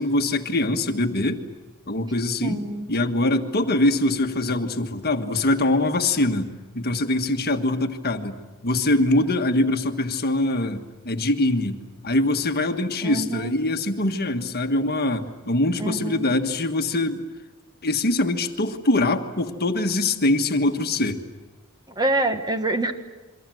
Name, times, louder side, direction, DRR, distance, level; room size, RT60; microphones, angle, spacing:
voice 1, 0.0-1.4 1.9-2.6 2.9-11.8 12.0-17.2 17.8-21.2, left 2 dB, 45° left, 6 dB, 1.6 m, -23 dB
voice 2, 2.4-2.9 13.0-13.5 15.8-16.3 21.9-22.9, right 2 dB, 20° right, 7 dB, 1.4 m, -26 dB
28.5 x 24.0 x 7.8 m, 1.2 s
head